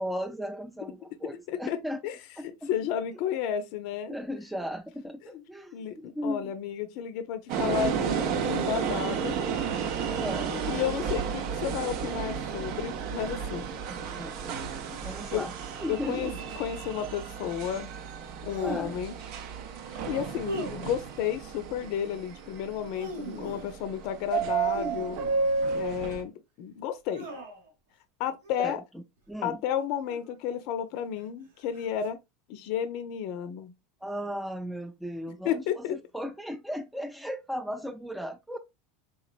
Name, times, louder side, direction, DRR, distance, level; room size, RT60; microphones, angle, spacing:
voice 1, 0.0-2.0 2.4-2.7 4.1-6.5 10.1-10.6 13.9-15.5 15.8-16.3 18.6-19.0 20.1-20.3 28.6-29.6 34.0-38.6, equal, 5° right, 0.4 m, -36 dB
voice 2, 1.5-2.2 2.7-4.2 5.3-5.4 5.7-9.4 10.5-13.7 14.9-15.4 15.9-16.3 16.6-17.9 18.4-19.1 19.9-25.2 25.7-26.3 26.6-27.3 28.2-28.8 29.4-32.2 32.5-33.7 35.4-36.0, left 9 dB, 60° left, 0.5 m, -32 dB
sound 1, 7.5-26.2, right 6 dB, 60° right, 0.6 m, -32 dB
sound 2, 16.1-16.6 18.4-19.1 20.4-21.2 22.7-23.8 24.6-25.8 27.1-27.7 28.4-28.7 30.0-30.5 31.7-32.1, right 1 dB, 90° right, 1.1 m, -39 dB
3.7 x 3.0 x 2.4 m
hypercardioid pair, 95°, 0 cm